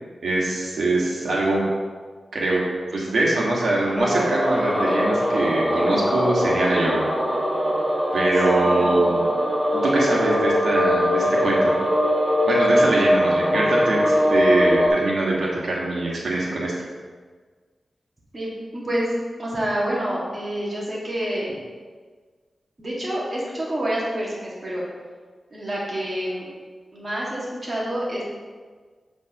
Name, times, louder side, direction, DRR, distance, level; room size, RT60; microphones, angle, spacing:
voice 1, 0.2-1.6 2.3-2.6 2.9-7.1 8.1-9.3 9.7-11.7 12.5-16.7, right 2 dB, 80° right, -4 dB, 1.8 m, -23 dB
sound 1, 4.0-14.9, equal, 10° right, 1.8 m, -21 dB
voice 2, 8.5-9.0 18.3-19.1 19.4-21.5 22.8-24.8 25.5-26.5 26.9-28.2, right 1 dB, 35° right, -6 dB, 2.1 m, -28 dB
7.5 x 7.3 x 3.1 m, 1.5 s
wide cardioid pair, 70°, 0 cm